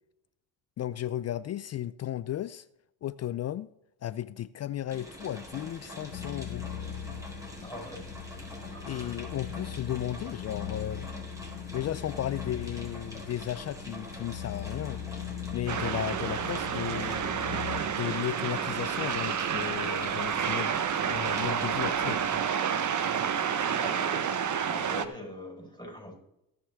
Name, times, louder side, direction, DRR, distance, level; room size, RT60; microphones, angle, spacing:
voice 1, 0.8-2.7 3.0-3.7 4.0-6.7 8.9-11.1 11.7-15.0 15.5-17.2 17.9-20.8 21.1-22.3, left 12 dB, 40° left, 0.4 m, -34 dB
sound 1, 4.9-22.5, left 1 dB, 5° right, 4.1 m, -45 dB
sound 2, 6.1-17.8, left 9 dB, 90° left, 1.4 m, -40 dB
voice 2, 7.6-8.1 8.7-9.2 23.7-24.3 24.7-26.2, left 1 dB, 10° left, 4.6 m, -42 dB
sound 3, 15.7-25.1, right 8 dB, 45° right, 1.0 m, -29 dB
18.0 x 6.6 x 3.5 m
supercardioid pair, 75°, 42 cm